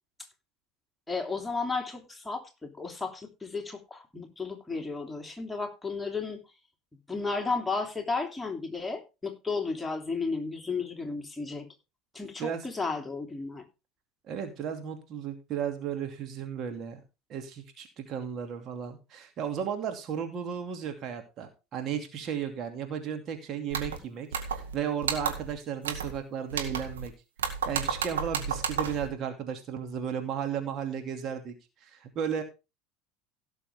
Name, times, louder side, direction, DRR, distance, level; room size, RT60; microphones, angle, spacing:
voice 1, 1.1-6.4 7.1-11.7 12.1-13.6, left 4 dB, 10° left, 3.1 m, -33 dB
voice 2, 14.3-17.0 17.3-27.1 27.4-31.5 31.8-32.4, right 8 dB, 45° right, 2.6 m, -34 dB
sound 1, 23.7-24.0 24.3-24.7 25.0-25.5 25.8-26.2 26.5-27.1 27.4-29.1, right 7 dB, 75° right, 1.9 m, -32 dB
17.0 x 6.9 x 3.6 m
figure-of-eight pair, 70°, 0 cm